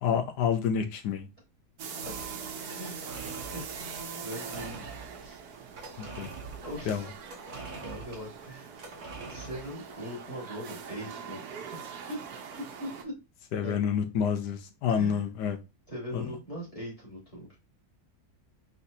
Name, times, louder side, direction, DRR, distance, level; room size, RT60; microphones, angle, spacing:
voice 1, 0.0-1.3 6.0-6.3 6.9-7.1 13.5-15.6 16.1-16.4, left 7 dB, 80° left, 7 dB, 1.3 m, -28 dB
sound 1, 1.8-13.0, right 6 dB, 70° right, 1.2 m, -42 dB
sound 2, 2.0-10.0, right 4 dB, 35° right, 0.9 m, -45 dB
voice 2, 2.7-3.2 3.5-4.9 5.2-5.4 6.6-7.1 7.8-8.7 9.3-13.1 13.6-13.8 14.9-15.2 15.9-17.6, equal, 20° left, -6 dB, 2.5 m, -41 dB
4.2 x 4.1 x 2.7 m, 0.27 s
omnidirectional pair, 1.8 m